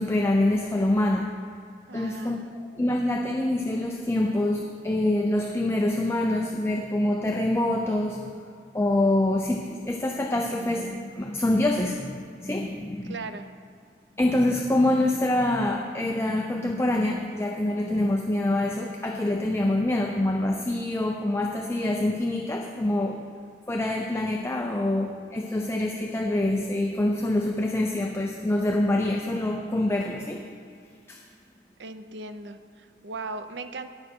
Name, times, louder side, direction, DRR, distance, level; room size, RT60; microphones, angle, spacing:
voice 1, 0.0-1.4 1.9-2.4 2.8-8.3 8.7-13.2 14.2-23.3 23.7-30.5 31.1-31.2, left 1 dB, 15° left, 2 dB, 0.5 m, -25 dB
voice 2, 1.9-2.5 13.0-13.5 31.8-33.9, right 3 dB, 80° right, 9 dB, 0.6 m, -38 dB
18.0 x 6.3 x 4.5 m, 2.3 s
head